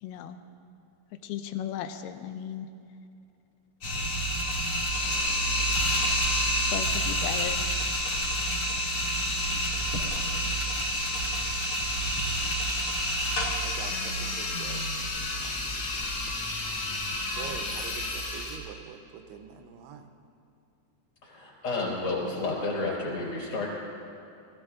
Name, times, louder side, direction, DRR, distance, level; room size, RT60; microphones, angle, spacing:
voice 1, 0.0-0.4 1.2-2.7 6.7-7.8, left 10 dB, 80° left, 9 dB, 2.7 m, -36 dB
sound 1, 3.8-18.6, equal, 45° left, 2.6 m, -29 dB
voice 2, 9.3-9.8 12.2-12.6 13.6-14.9 15.2-16.1 16.4-16.5 17.3-20.1, right 7 dB, 90° right, 5 dB, 3.0 m, -46 dB
voice 3, 21.2-23.7, left 3 dB, 25° left, -6 dB, 4.6 m, -31 dB
20.0 x 15.5 x 3.7 m, 2.6 s
omnidirectional pair, 4.5 m